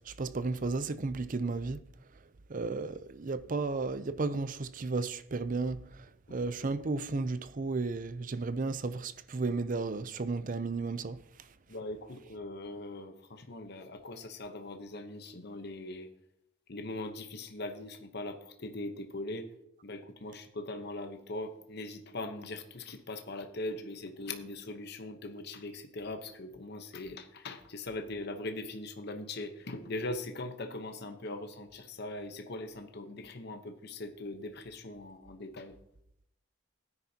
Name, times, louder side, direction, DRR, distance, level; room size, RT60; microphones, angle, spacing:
voice 1, 0.0-1.8 2.5-11.5, right 3 dB, 40° right, 0.5 m, -34 dB
voice 2, 11.7-16.1 16.7-19.5 19.8-35.8, left 2 dB, 55° left, 0.9 m, -41 dB
15.5 x 9.7 x 2.8 m
head